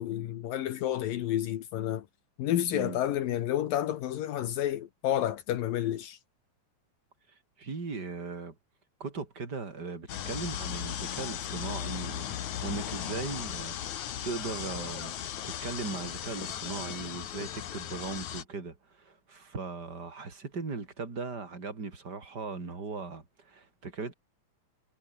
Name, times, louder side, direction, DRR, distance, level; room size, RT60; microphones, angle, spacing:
voice 1, 0.0-2.1 2.4-6.2, left 12 dB, 80° left, 3.1 m, -30 dB
voice 2, 7.6-8.5 9.0-15.1 15.4-24.1, right 4 dB, 30° right, 4.1 m, -38 dB
sound 1, 10.1-18.4, left 10 dB, 60° left, 2.8 m, -37 dB
omnidirectional pair, 4.0 m